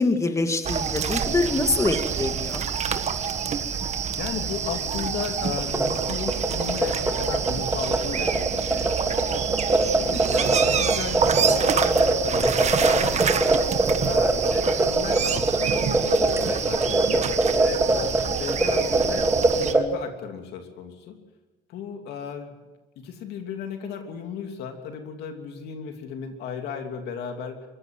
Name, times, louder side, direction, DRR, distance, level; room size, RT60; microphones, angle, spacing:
voice 1, 0.0-2.7 9.9-10.2, left 3 dB, 20° left, 6 dB, 2.0 m, -25 dB
sound 1, 0.6-19.7, right 7 dB, 40° right, 1.5 m, -27 dB
voice 2, 4.1-9.5 10.0-13.5 14.0-17.3 17.6-19.2 19.5-21.2 21.7-22.5 23.0-27.6, left 7 dB, 80° left, 4 dB, 3.0 m, -35 dB
sound 2, 5.5-19.8, right 2 dB, 15° right, 2.0 m, -23 dB
24.0 x 14.0 x 7.7 m, 1.1 s
cardioid pair, 110°, 17 cm